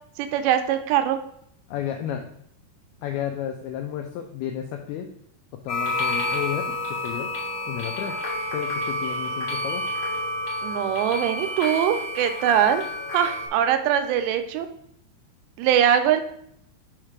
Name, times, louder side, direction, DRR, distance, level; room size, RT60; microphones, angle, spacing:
voice 1, 0.2-1.2 10.6-12.8 13.1-14.7 15.6-16.2, right 9 dB, 80° right, 7 dB, 2.8 m, -22 dB
voice 2, 1.7-2.3 3.0-5.1 5.5-7.3 7.7-8.2 8.5-9.9, left 10 dB, 90° left, 4 dB, 2.2 m, -32 dB
sound 1, 5.7-13.5, left 1 dB, 45° left, 1.5 m, -29 dB
6.4 x 3.3 x 5.9 m, 0.69 s
omnidirectional pair, 5.1 m